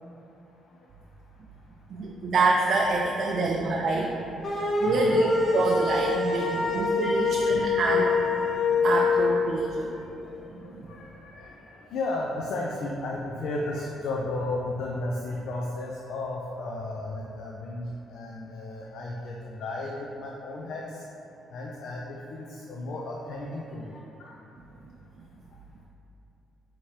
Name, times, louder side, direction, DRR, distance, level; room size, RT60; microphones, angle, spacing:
voice 1, 1.9-4.1 4.6-8.5 8.8-9.9 10.6-10.7, right 3 dB, 55° right, -1 dB, 0.4 m, -27 dB
voice 2, 3.2-4.3 4.8-5.9 6.3-8.2 8.7-9.0 9.9-21.0 21.5-24.3, left 2 dB, 75° left, -2 dB, 0.4 m, -35 dB
sound 1, 4.4-9.3, left 4 dB, 50° left, 0.8 m, -25 dB
5.8 x 2.8 x 3.2 m, 2.9 s
cardioid pair, 90°, 0 cm